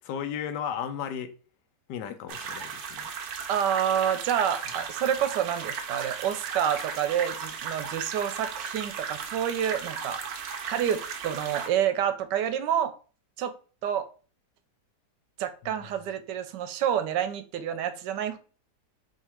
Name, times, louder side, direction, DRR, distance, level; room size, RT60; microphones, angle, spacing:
voice 1, 0.0-1.3 1.9-3.1, left 8 dB, 90° left, 1.2 m, -34 dB
sound 1, 2.3-11.7, right 6 dB, 70° right, 1.1 m, -36 dB
voice 2, 3.5-12.9 13.4-13.5 13.8-14.1 15.4-18.4, right 9 dB, 85° right, 1.2 m, -28 dB
3.6 x 3.0 x 4.3 m
omnidirectional pair, 1.8 m